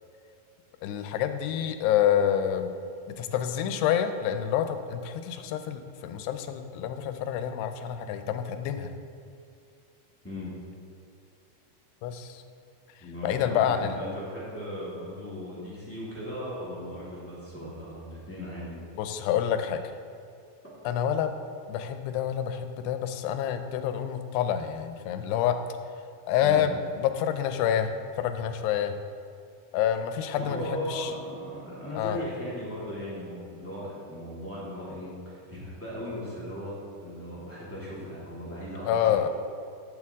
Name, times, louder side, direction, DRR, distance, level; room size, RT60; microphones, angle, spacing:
voice 1, 0.8-2.7 3.2-8.9 12.0-12.4 13.2-14.0 19.0-19.8 20.9-21.3 21.7-25.6 26.3-28.9 29.7-31.1 31.9-32.2 38.8-39.3, left 9 dB, 90° left, 8 dB, 2.7 m, -27 dB
voice 2, 10.2-10.5 13.0-18.8 26.4-26.6 30.4-36.8 37.0-39.2, equal, 10° left, -9 dB, 0.9 m, -37 dB
12.5 x 7.0 x 3.6 m, 2.4 s
omnidirectional pair, 4.7 m